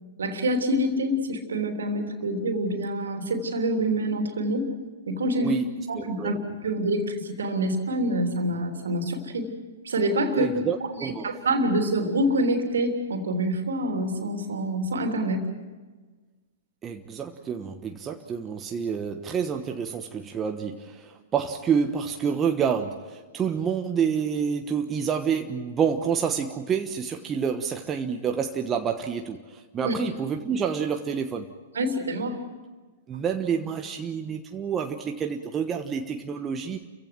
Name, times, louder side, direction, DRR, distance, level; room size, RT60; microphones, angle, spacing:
voice 1, 0.2-4.7 5.1-5.5 5.9-6.4 6.6-9.5 9.8-10.5 10.9-15.4 29.8-29.9 31.7-32.4, right 1 dB, 65° right, 5 dB, 3.3 m, -26 dB
voice 2, 5.4-6.4 10.3-11.3 16.8-31.5 33.1-36.8, right 7 dB, 20° right, 5 dB, 1.2 m, -28 dB
30.0 x 16.0 x 7.8 m, 1.4 s
figure-of-eight pair, 105°, 0 cm